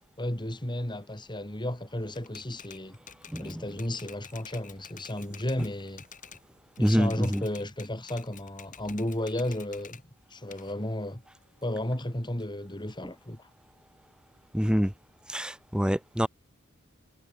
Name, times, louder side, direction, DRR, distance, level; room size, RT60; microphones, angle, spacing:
voice 1, 0.2-3.0 3.4-6.0 6.8-10.0 10.3-11.2 11.6-13.5, left 1 dB, 20° left, 3.9 m, -33 dB
Typewriter, 2.1-6.4 6.8-10.0 10.5-12.2, left 7 dB, 40° left, 3.4 m, -49 dB
voice 2, 3.3-3.6 6.8-7.4 14.5-14.9 15.3-16.3, equal, 5° right, 1.2 m, -26 dB
head